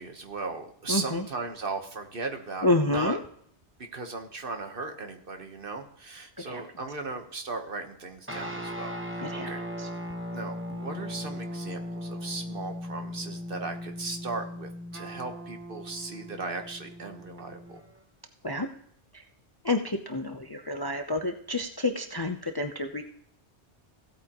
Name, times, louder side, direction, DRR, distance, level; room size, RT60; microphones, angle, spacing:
voice 1, 0.0-3.2 3.8-8.9 9.3-9.6 10.3-17.8, right 3 dB, 50° right, 5 dB, 1.4 m, -37 dB
voice 2, 0.9-1.2 2.6-3.2 6.4-6.6 9.2-9.5 9.8-9.9 18.4-18.7 19.1-19.2 19.6-23.0, left 2 dB, 25° left, 6 dB, 0.6 m, -29 dB
sound 1, 8.3-18.0, equal, 10° right, 1.0 m, -38 dB
15.5 x 8.5 x 3.0 m, 0.65 s
omnidirectional pair, 1.2 m